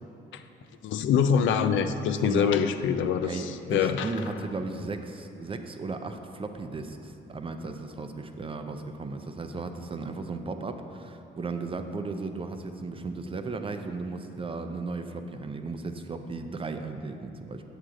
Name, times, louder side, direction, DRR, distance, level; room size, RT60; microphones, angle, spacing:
voice 1, 0.8-4.1, left 7 dB, 75° left, 9 dB, 0.4 m, -25 dB
voice 2, 2.2-2.7 3.2-17.6, right 3 dB, 25° right, 7 dB, 0.5 m, -35 dB
8.0 x 6.3 x 3.8 m, 2.8 s
cardioid pair, 90°, 20 cm